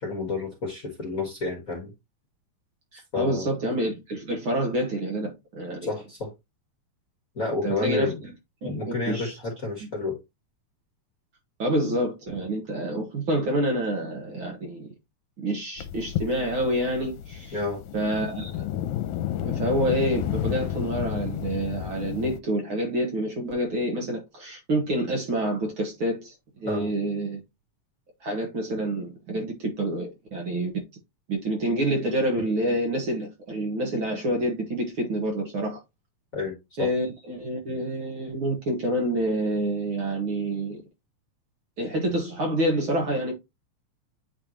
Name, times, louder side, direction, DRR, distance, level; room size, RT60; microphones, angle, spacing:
voice 1, 0.0-1.9 3.1-3.5 5.8-6.3 7.3-8.2 8.6-10.2 17.5-17.8 26.6-26.9 36.3-36.9, left 3 dB, 35° left, 1.7 m, -30 dB
voice 2, 2.9-5.9 7.6-8.1 8.6-9.4 11.6-14.9 15.4-17.6 17.9-18.7 19.5-27.4 28.2-30.8 31.3-35.8 36.8-40.8 41.8-43.3, right 1 dB, 50° right, 2.0 m, -27 dB
sound 1, 15.8-22.4, left 11 dB, 85° left, 2.0 m, -31 dB
9.1 x 3.5 x 2.9 m
omnidirectional pair, 3.5 m